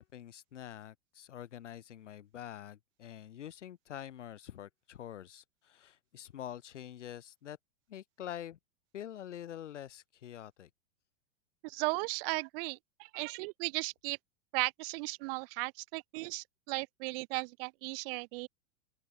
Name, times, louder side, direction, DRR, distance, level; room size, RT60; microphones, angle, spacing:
voice 1, 0.0-7.6 7.9-8.6 8.9-10.7, left 11 dB, 85° left, 4.6 m, -46 dB
voice 2, 11.6-14.2 14.5-18.5, right 29 dB, 50° right, 1.9 m, -36 dB
open air
hypercardioid pair, 130°, 35 cm